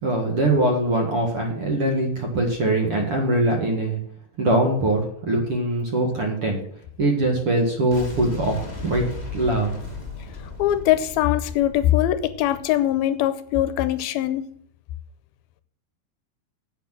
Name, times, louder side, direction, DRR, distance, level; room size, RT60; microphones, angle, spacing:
voice 1, 0.0-4.0 4.4-6.6 7.0-9.1 9.3-9.8, right 1 dB, 45° right, 1 dB, 2.1 m, -22 dB
Boom, 7.9-12.8, left 3 dB, 25° left, 1.0 m, -36 dB
voice 2, 10.6-14.5, left 13 dB, 80° left, 12 dB, 2.5 m, -22 dB
9.3 x 8.1 x 7.5 m, 0.64 s
omnidirectional pair, 4.4 m